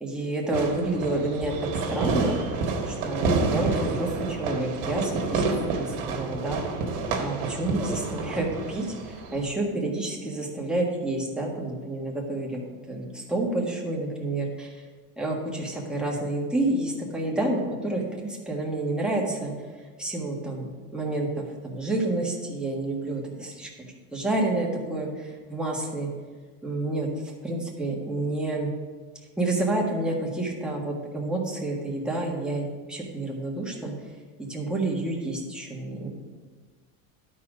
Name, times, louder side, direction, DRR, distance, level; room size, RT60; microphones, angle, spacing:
voice 1, 0.0-6.6 7.2-12.6 12.9-14.7 15.2-19.5 20.0-23.7 24.1-26.1 26.6-27.1 27.4-28.7 29.4-33.9 34.4-36.1, right 2 dB, ahead, -3 dB, 1.4 m, -29 dB
Fireworks, 0.5-9.5, right 3 dB, 90° right, 1.6 m, -29 dB
12.0 x 4.3 x 4.9 m, 1.4 s
cardioid pair, 140°, 39 cm